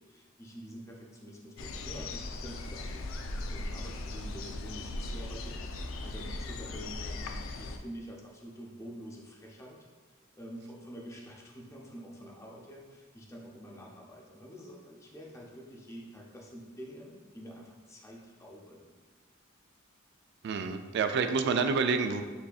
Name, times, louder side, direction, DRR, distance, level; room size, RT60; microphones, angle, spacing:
voice 1, 0.0-9.9 10.4-18.9, equal, 15° left, -2 dB, 0.6 m, -47 dB
sound 1, 1.6-7.8, left 2 dB, 90° left, 0.4 m, -38 dB
voice 2, 20.4-22.2, right 5 dB, 60° right, 8 dB, 0.3 m, -28 dB
6.9 x 2.7 x 2.4 m, 1.4 s
head